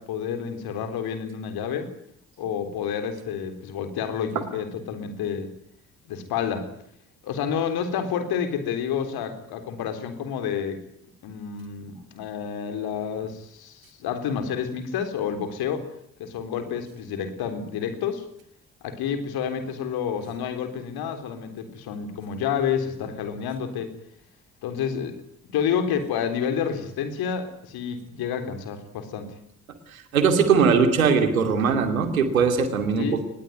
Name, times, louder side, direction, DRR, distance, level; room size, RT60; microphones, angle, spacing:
voice 1, 0.0-1.9 2.4-5.6 6.1-6.7 7.2-10.8 11.2-15.9 16.2-18.3 18.8-23.9 24.6-25.2 25.4-29.3 33.0-33.2, left 7 dB, 65° left, 9 dB, 3.9 m, -29 dB
voice 2, 29.9-33.1, right 5 dB, 85° right, 8 dB, 2.7 m, -20 dB
23.5 x 20.5 x 9.3 m, 0.71 s
figure-of-eight pair, 40°, 40 cm